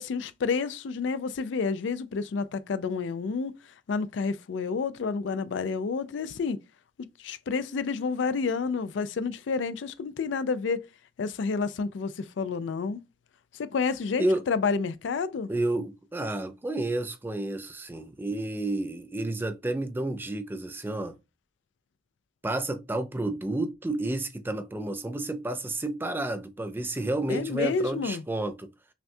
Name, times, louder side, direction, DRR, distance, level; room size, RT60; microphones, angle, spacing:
voice 1, 0.0-3.5 3.9-6.6 7.2-10.8 11.2-13.0 13.6-15.5 27.3-28.2, left 5 dB, 70° left, 0.4 m, -29 dB
voice 2, 15.5-21.1 22.4-28.7, right 2 dB, 10° right, 0.3 m, -30 dB
5.8 x 2.3 x 2.6 m
head